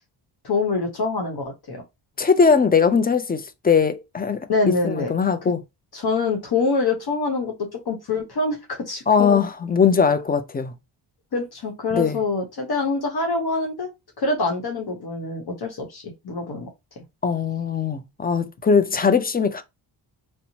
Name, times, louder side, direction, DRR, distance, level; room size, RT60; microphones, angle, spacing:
voice 1, 0.4-1.8 4.5-5.1 5.9-9.4 11.3-13.9 14.2-16.7, left 3 dB, 50° left, 0.9 m, -25 dB
voice 2, 2.2-4.4 4.8-5.6 9.1-10.7 11.9-12.2 17.2-19.6, left 6 dB, 20° left, 0.4 m, -20 dB
2.8 x 2.1 x 2.7 m
cardioid pair, 60°, 49 cm